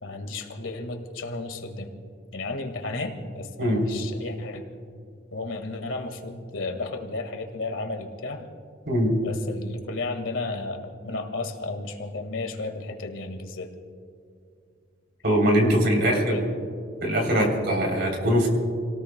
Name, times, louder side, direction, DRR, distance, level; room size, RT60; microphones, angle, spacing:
voice 1, 0.0-1.9 2.3-4.6 5.3-8.4 9.2-13.7 16.1-16.4 17.3-17.5, left 3 dB, 90° left, 5 dB, 1.8 m, -33 dB
voice 2, 15.2-16.5 17.0-18.5, equal, 55° right, 0 dB, 3.4 m, -22 dB
29.5 x 18.5 x 2.2 m, 2.4 s
head